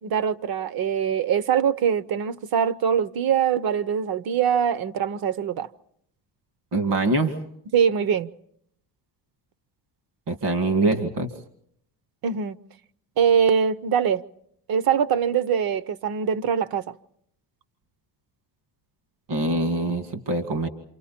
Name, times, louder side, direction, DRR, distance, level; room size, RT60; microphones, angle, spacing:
voice 1, 0.0-5.7 7.7-8.3 12.2-12.6 13.2-14.2 14.7-16.9, right 8 dB, 55° right, 0.8 m, -23 dB
voice 2, 6.7-7.4 10.3-11.3 19.3-20.7, right 2 dB, 75° right, 2.4 m, -24 dB
29.5 x 27.0 x 4.3 m
cardioid pair, 150°, 42 cm